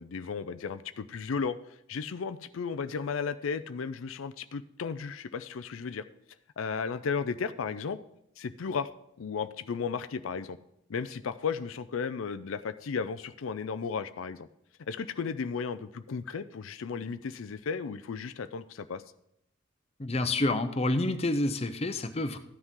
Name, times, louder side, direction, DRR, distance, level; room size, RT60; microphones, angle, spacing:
voice 1, 0.0-6.0 6.6-8.0 8.4-8.9 9.2-10.6 10.9-14.5 14.9-19.0, left 5 dB, 80° left, 12 dB, 0.4 m, -34 dB
voice 2, 20.0-22.4, left 2 dB, 30° left, 9 dB, 0.7 m, -28 dB
14.0 x 9.8 x 3.7 m, 0.77 s
head